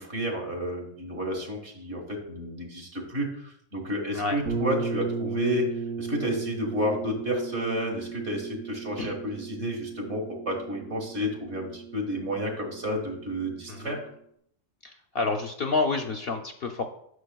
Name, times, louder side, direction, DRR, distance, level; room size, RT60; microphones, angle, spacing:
voice 1, 0.0-5.7 6.0-14.0, equal, 60° right, 0 dB, 1.9 m, -31 dB
sound 1, 4.4-14.1, right 5 dB, 90° right, 3.0 m, -36 dB
voice 2, 14.8-16.9, left 3 dB, 60° left, 5 dB, 0.7 m, -29 dB
9.5 x 6.3 x 2.3 m, 0.70 s
omnidirectional pair, 1.3 m